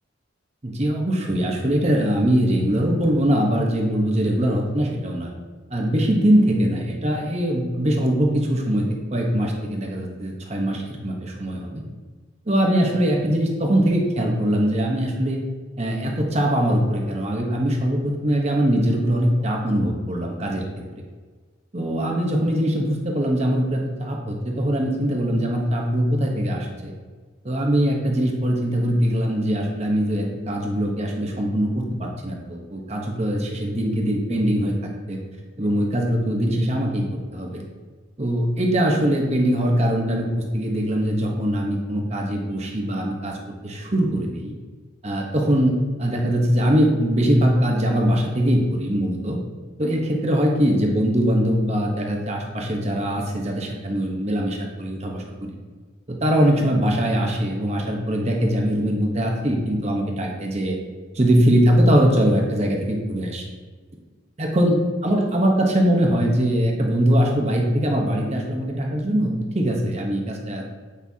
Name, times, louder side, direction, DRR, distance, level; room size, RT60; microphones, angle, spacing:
voice 1, 0.6-5.3 5.7-11.8 12.5-15.4 15.8-20.6 21.7-26.9 27.4-35.2 35.6-37.0 37.3-37.6 38.2-43.4 43.6-44.5 45.0-49.4 49.8-55.5 56.1-60.8 61.1-63.4 64.4-64.8 65.0-70.7, equal, 35° right, 0 dB, 1.0 m, -22 dB
8.4 x 5.5 x 2.8 m, 1.4 s
head